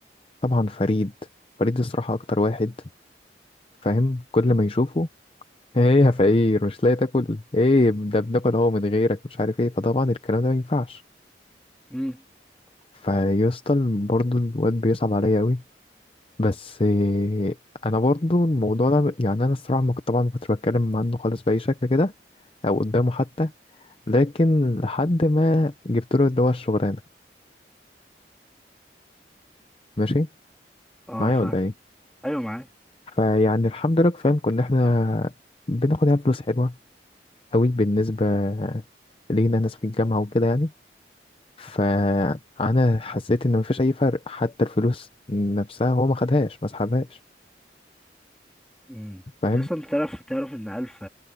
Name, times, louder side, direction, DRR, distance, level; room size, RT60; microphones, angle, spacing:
voice 1, 0.4-1.1 1.6-2.7 3.8-5.1 5.7-11.0 13.0-15.6 16.4-17.6 17.8-22.1 22.6-23.5 24.1-27.0 30.0-30.3 31.2-31.7 33.1-35.3 35.7-36.7 37.5-38.8 39.3-40.7 41.6-47.2 49.4-49.7, left 2 dB, 30° left, 0.7 m, -22 dB
voice 2, 11.9-12.2 31.1-31.6 32.2-32.7 48.9-51.1, equal, 5° left, 3.5 m, -30 dB
head